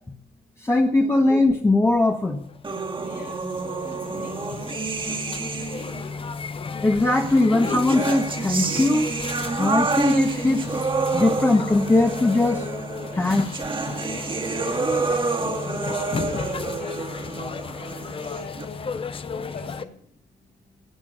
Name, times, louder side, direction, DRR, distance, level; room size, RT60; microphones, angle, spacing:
voice 1, 0.6-2.4 6.8-9.1 9.6-10.6 11.1-12.7 13.1-13.5, left 2 dB, 15° left, 1 dB, 1.5 m, -20 dB
sound 1, 2.3-19.8, left 5 dB, 30° left, 0.8 m, -34 dB
sound 2, 2.6-6.1 7.1-18.7, right 4 dB, 30° right, 2.1 m, -29 dB
voice 2, 2.9-5.3 5.8-6.3 14.4-20.0, left 5 dB, 55° left, -4 dB, 5.6 m, -41 dB
18.5 x 10.5 x 6.8 m, 0.65 s
cardioid pair, 130°, 18 cm